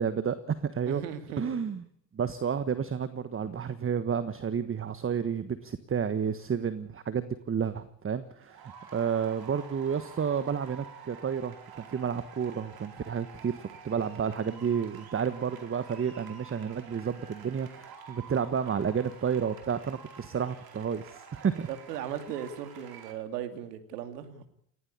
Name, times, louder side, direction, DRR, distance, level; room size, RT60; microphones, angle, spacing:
voice 1, 0.0-1.0 1.4-1.8 2.1-21.7, right 7 dB, 25° right, 13 dB, 1.4 m, -31 dB
voice 2, 0.9-1.6 21.7-24.5, right 9 dB, 90° right, 9 dB, 2.6 m, -37 dB
sound 1, 8.1-23.1, right 6 dB, 50° right, 4.7 m, -49 dB
20.0 x 16.0 x 8.8 m, 0.69 s
hypercardioid pair, 75°, 46 cm